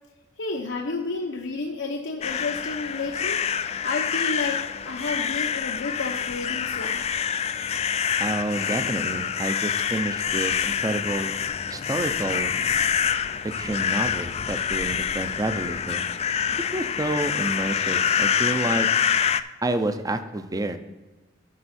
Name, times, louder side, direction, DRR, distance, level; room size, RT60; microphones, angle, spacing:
voice 1, 0.4-3.4 3.8-7.0, left 3 dB, 80° left, 0 dB, 0.8 m, -31 dB
sound 1, 2.2-19.4, left 8 dB, 35° left, 0.3 m, -26 dB
voice 2, 8.2-11.3 11.7-12.5 13.4-16.1 16.7-18.9 19.6-20.8, right 2 dB, 20° right, 9 dB, 0.6 m, -29 dB
12.5 x 5.3 x 4.2 m, 1.1 s
head